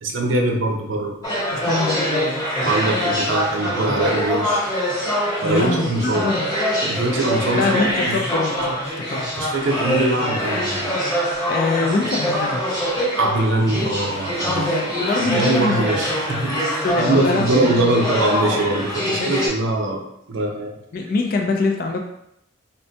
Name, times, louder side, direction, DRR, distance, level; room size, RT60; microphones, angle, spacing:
voice 1, 0.0-1.2 2.6-4.6 5.4-6.3 6.8-8.2 9.4-10.9 13.2-14.6 15.1-20.0 20.3-20.8, right 2 dB, 70° right, 1 dB, 0.6 m, -22 dB
sound 1, 1.2-19.5, equal, 20° left, 1.0 m, -24 dB
voice 2, 1.5-2.5 5.4-6.5 7.5-9.3 11.5-12.7 14.4-15.9 16.8-17.9 19.1-19.4 20.9-22.0, left 3 dB, 45° left, 2 dB, 0.3 m, -24 dB
4.2 x 2.2 x 2.7 m, 0.79 s
head